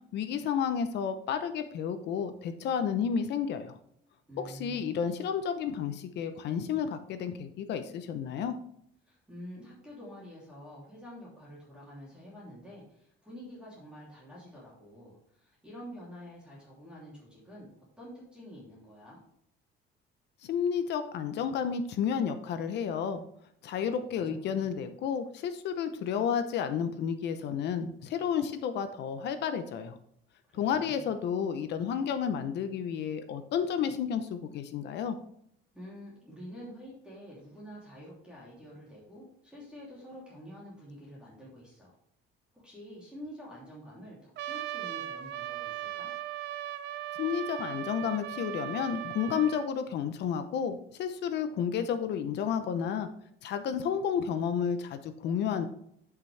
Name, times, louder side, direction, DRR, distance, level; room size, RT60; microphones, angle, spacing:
voice 1, 0.1-3.8 4.4-8.5 20.4-23.2 23.6-30.0 30.5-35.2 47.2-53.1 53.4-55.7, left 7 dB, 55° left, 9 dB, 0.8 m, -31 dB
voice 2, 4.3-5.0 9.1-17.7 18.0-19.2 23.8-24.7 30.5-31.1 35.7-42.0 42.6-46.1, equal, 5° right, -6 dB, 3.0 m, -48 dB
Trumpet, 44.4-49.7, right 13 dB, 55° right, 0.5 m, -38 dB
10.5 x 6.0 x 3.3 m, 0.70 s
cardioid pair, 165°, 21 cm